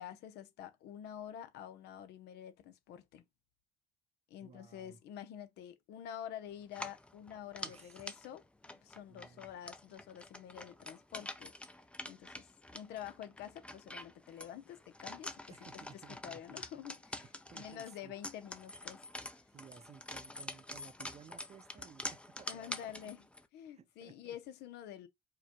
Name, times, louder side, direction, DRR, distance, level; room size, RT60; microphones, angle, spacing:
voice 1, 0.0-3.2 4.3-11.5 12.1-19.0 22.5-23.3 23.5-25.1, left 10 dB, 80° left, 0.7 m, -48 dB
voice 2, 4.4-5.0 7.6-8.0 9.1-9.5 15.5-16.6 17.2-18.1 19.5-22.9 23.7-24.4, right 7 dB, 40° right, 0.6 m, -57 dB
sound 1, 6.7-23.5, left 1 dB, 5° left, 0.4 m, -47 dB
4.8 x 2.2 x 2.9 m
cardioid pair, 110°, 17 cm